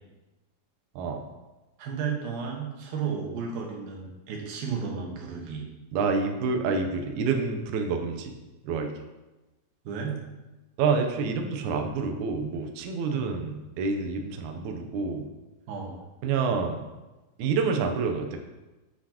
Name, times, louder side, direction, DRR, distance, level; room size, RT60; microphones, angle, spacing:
voice 1, 1.8-5.7 9.8-10.2 13.1-13.3 15.7-16.0, right 6 dB, 90° right, 0 dB, 3.1 m, -33 dB
voice 2, 5.9-8.3 8.6-8.9 10.8-15.3 16.2-16.8 17.4-18.4, right 4 dB, 75° right, 4 dB, 2.0 m, -28 dB
8.3 x 7.5 x 2.9 m, 1.1 s
omnidirectional pair, 4.0 m